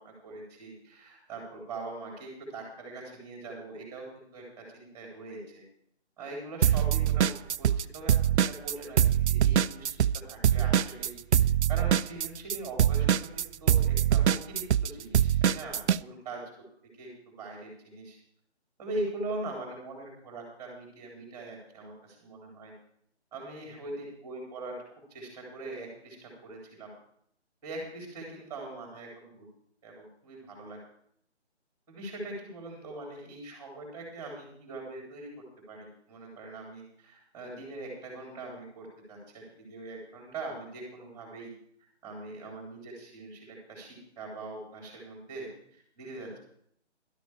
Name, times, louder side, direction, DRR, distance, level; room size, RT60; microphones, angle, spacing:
voice 1, 0.0-4.4 4.7-5.6 6.2-16.7 17.0-18.2 18.8-22.7 23.3-26.9 27.6-29.5 29.8-30.8 31.9-35.3 35.7-41.5 42.0-46.4, right 2 dB, 10° right, -1 dB, 3.4 m, -42 dB
sound 1, 6.6-7.8 8.1-16.0, right 10 dB, 75° right, 0.5 m, -23 dB
12.0 x 11.5 x 4.9 m, 0.68 s
hypercardioid pair, 170°, 35 cm